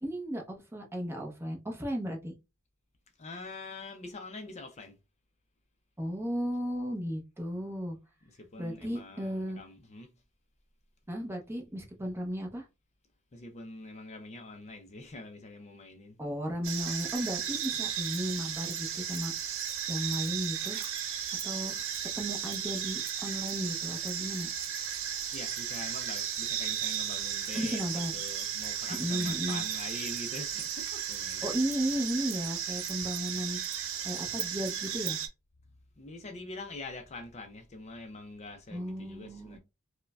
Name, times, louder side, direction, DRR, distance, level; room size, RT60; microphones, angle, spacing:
voice 1, 0.0-2.3 6.0-8.0 8.6-9.6 11.1-12.7 16.2-19.5 19.9-20.8 21.4-21.9 22.2-24.5 27.5-28.1 28.9-29.6 31.4-33.6 34.0-35.2 38.7-39.6, equal, 10° right, 0.8 m, -34 dB
voice 2, 3.2-5.0 8.2-10.1 13.3-16.2 25.3-31.6 36.0-39.6, left 2 dB, 35° left, 0.5 m, -44 dB
sound 1, 16.6-35.3, right 9 dB, 70° right, 0.7 m, -35 dB
4.5 x 2.1 x 2.3 m
head